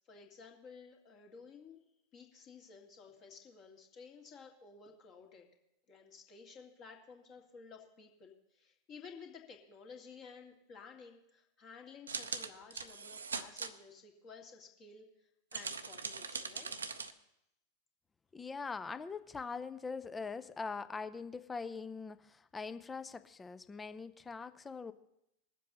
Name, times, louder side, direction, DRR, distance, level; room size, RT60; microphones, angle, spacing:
voice 1, 0.1-1.8 2.1-5.5 5.9-16.7, left 5 dB, 35° left, 1 dB, 2.0 m, -54 dB
sound 1, 12.1-13.7 15.5-17.1, right 5 dB, 75° right, 0.6 m, -41 dB
voice 2, 18.3-24.9, left 4 dB, 15° left, 13 dB, 0.5 m, -42 dB
21.0 x 7.5 x 4.0 m, 0.83 s
figure-of-eight pair, 90°, 0 cm